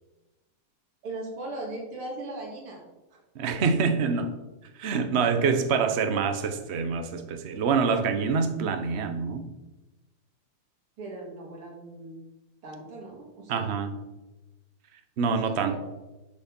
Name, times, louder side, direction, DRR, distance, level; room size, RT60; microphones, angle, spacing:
voice 1, 1.0-2.8 11.0-12.2 12.6-13.7 15.4-15.8, right 2 dB, 85° right, -2 dB, 3.0 m, -38 dB
voice 2, 3.3-4.3 4.8-9.4 13.5-13.9 15.2-15.8, right 5 dB, 50° right, 7 dB, 0.8 m, -26 dB
12.0 x 5.0 x 5.2 m, 1.1 s
omnidirectional pair, 2.3 m